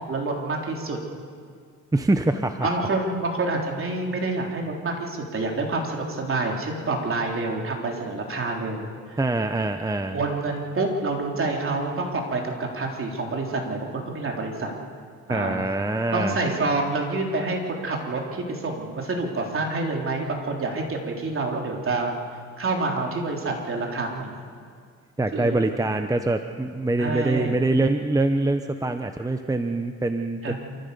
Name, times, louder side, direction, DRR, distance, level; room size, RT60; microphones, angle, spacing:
voice 1, 0.1-1.0 2.6-8.9 10.1-14.7 15.3-15.7 16.1-22.2 22.6-24.4 25.3-25.6 27.0-27.6 30.4-30.5, right 3 dB, 45° right, 0 dB, 3.7 m, -27 dB
voice 2, 1.9-2.7 9.2-10.2 15.3-16.4 25.2-30.5, right 2 dB, 10° right, 7 dB, 0.9 m, -24 dB
27.5 x 15.0 x 7.0 m, 2.1 s
cardioid pair, 90°, 30 cm